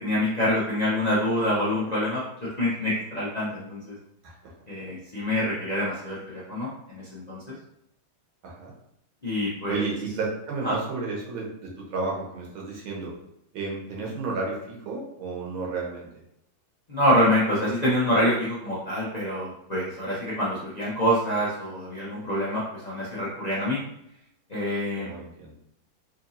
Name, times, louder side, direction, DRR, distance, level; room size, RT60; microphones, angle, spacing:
voice 1, 0.0-3.9 4.7-7.4 9.2-9.8 10.6-10.7 16.9-23.8 24.5-25.1, equal, 55° left, -8 dB, 0.4 m, -26 dB
voice 2, 9.7-13.1 13.5-16.1 24.9-25.5, right 3 dB, 85° right, -3 dB, 1.8 m, -32 dB
4.2 x 2.9 x 2.7 m, 0.77 s
omnidirectional pair, 2.2 m